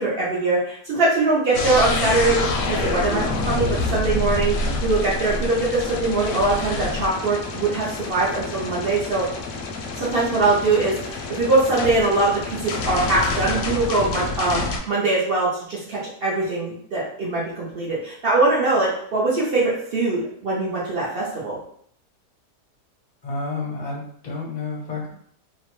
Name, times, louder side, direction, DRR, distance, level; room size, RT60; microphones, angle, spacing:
voice 1, 0.0-9.2 10.0-21.6, right 2 dB, 60° right, -5 dB, 0.6 m, -22 dB
sound 1, 1.5-14.8, left 2 dB, 70° left, 0.8 m, -27 dB
voice 2, 23.2-25.1, left 3 dB, 55° left, -4 dB, 0.5 m, -30 dB
2.8 x 2.1 x 3.0 m, 0.64 s
omnidirectional pair, 1.8 m